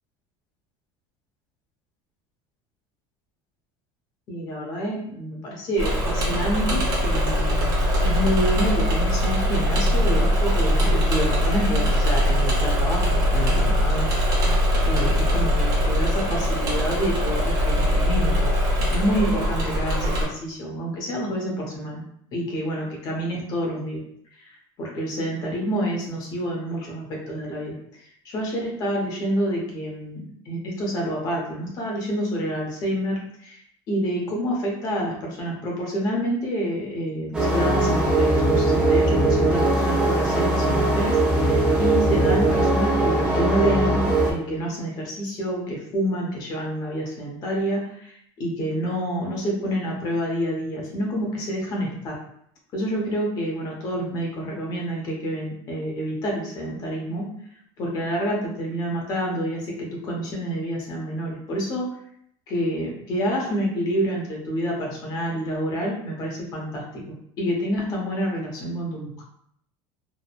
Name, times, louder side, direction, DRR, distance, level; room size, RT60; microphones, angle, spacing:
voice 1, 4.3-7.6 8.0-18.5 18.9-22.0 22.3-24.0 24.4-33.6 33.9-52.2 52.7-57.3 57.8-61.9 62.5-67.0 67.4-69.2, equal, 30° left, -1 dB, 0.6 m, -28 dB
Engine / Mechanisms, 5.8-20.3, equal, 30° right, 0.7 m, -21 dB
sound 1, 37.3-44.3, right 2 dB, 5° right, 0.4 m, -20 dB
2.9 x 2.1 x 2.4 m, 0.69 s
cardioid pair, 175°, 12 cm